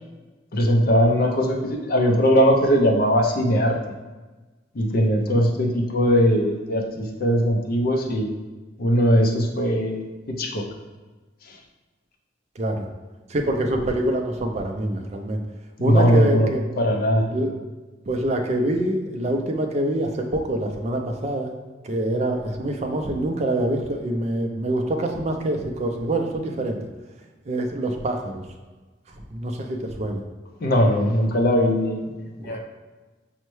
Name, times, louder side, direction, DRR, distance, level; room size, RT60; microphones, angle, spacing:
voice 1, 0.5-3.7 4.7-8.3 8.8-10.0 10.4-10.6 15.8-16.5 16.8-17.2 30.6-32.1 32.4-32.6, equal, 50° left, 2 dB, 0.5 m, -20 dB
voice 2, 5.0-5.5 12.6-12.9 13.3-15.4 15.8-16.6 17.3-17.5 18.1-21.5 21.8-26.8 27.5-28.4 29.3-30.2 32.4-32.6, right 1 dB, 35° right, 3 dB, 0.4 m, -25 dB
5.4 x 2.1 x 3.1 m, 1.2 s
head